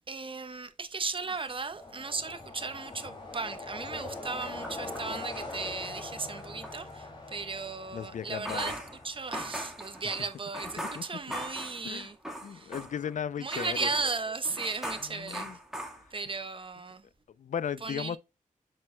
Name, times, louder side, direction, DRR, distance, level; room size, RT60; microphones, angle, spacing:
voice 1, 0.1-8.8 9.0-12.2 12.5-12.7 13.4-15.5 16.1-17.0 17.8-18.2, right 4 dB, 40° right, 0.9 m, -36 dB
sound 1, 1.1-2.3 2.7-6.8 8.3-13.2 13.5-16.4, equal, 5° right, 1.6 m, -42 dB
sound 2, 1.8-10.3, left 2 dB, 35° left, 2.5 m, -43 dB
voice 2, 7.9-8.7 10.8-11.0 11.8-12.1 12.4-13.9 15.1-15.6 17.4-18.2, left 8 dB, 65° left, 0.4 m, -36 dB
7.5 x 6.1 x 2.2 m
wide cardioid pair, 110°, 14 cm